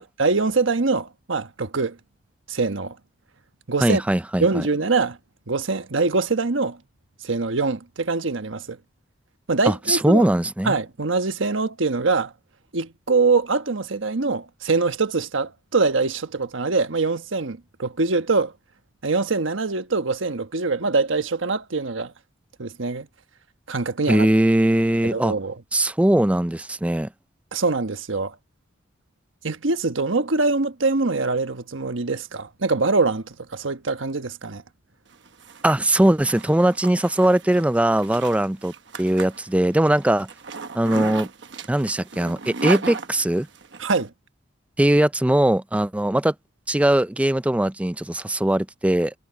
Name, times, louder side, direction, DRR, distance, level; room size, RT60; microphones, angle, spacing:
voice 1, 0.0-2.0 2.5-3.0 3.7-4.0 4.4-5.2 5.5-6.8 7.2-8.8 9.5-10.3 10.6-12.3 12.7-18.5 19.0-22.1 22.6-23.1 23.7-24.3 25.0-25.5 27.5-28.3 29.4-34.6 43.8-44.1, right 3 dB, 85° right, 1.2 m, -23 dB
voice 2, 3.8-4.6 9.7-10.8 24.1-25.3 25.7-27.1 35.6-38.7 39.0-40.3 40.7-41.3 41.7-43.5 44.8-46.3 46.7-49.1, right 1 dB, 5° right, 0.4 m, -20 dB
Zipper (clothing), 35.1-43.8, right 4 dB, 65° right, 1.1 m, -35 dB
head